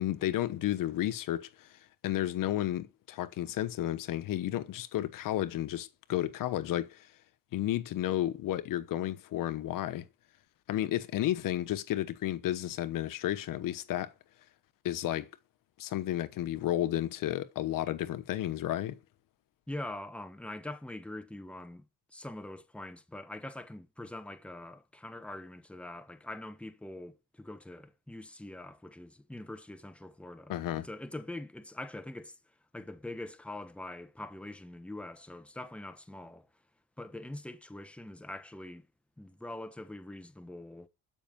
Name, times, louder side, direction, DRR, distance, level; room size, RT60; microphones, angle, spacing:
voice 1, 0.0-1.7 2.0-7.1 7.5-10.0 10.7-14.1 14.8-15.3 15.8-19.0 30.5-30.9, left 13 dB, 90° left, 1.1 m, -32 dB
voice 2, 19.7-32.4 32.7-36.5 37.0-38.9 39.2-40.9, left 1 dB, 5° left, 1.2 m, -43 dB
13.0 x 5.6 x 8.8 m
cardioid pair, 120°, 32 cm